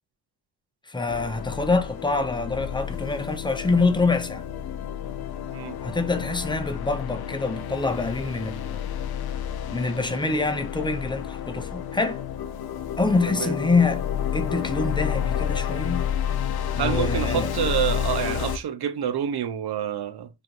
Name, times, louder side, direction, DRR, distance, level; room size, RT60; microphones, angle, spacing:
voice 1, 0.9-4.4 5.8-8.8 9.7-12.2 13.0-14.0 14.3-16.1 16.7-17.5, left 3 dB, 10° left, 0.6 m, -25 dB
Space Ambient Voyage, 1.1-18.6, left 9 dB, 60° left, 0.5 m, -30 dB
voice 2, 16.8-20.3, right 9 dB, 60° right, 0.6 m, -27 dB
3.3 x 2.6 x 2.4 m
supercardioid pair, 45°, 44 cm